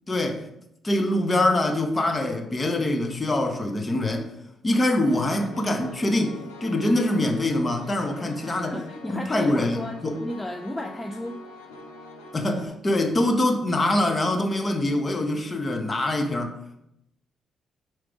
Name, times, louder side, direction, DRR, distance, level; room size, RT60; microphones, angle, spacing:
voice 1, 0.1-0.4 0.8-4.3 4.6-8.8 9.1-10.2 12.3-16.6, left 1 dB, 30° left, 4 dB, 1.0 m, -24 dB
Piano, 5.1-12.7, left 3 dB, 80° left, 0.7 m, -44 dB
voice 2, 8.4-11.7, left 1 dB, 10° left, 3 dB, 0.5 m, -34 dB
5.9 x 3.1 x 5.1 m, 0.82 s
figure-of-eight pair, 40°, 0 cm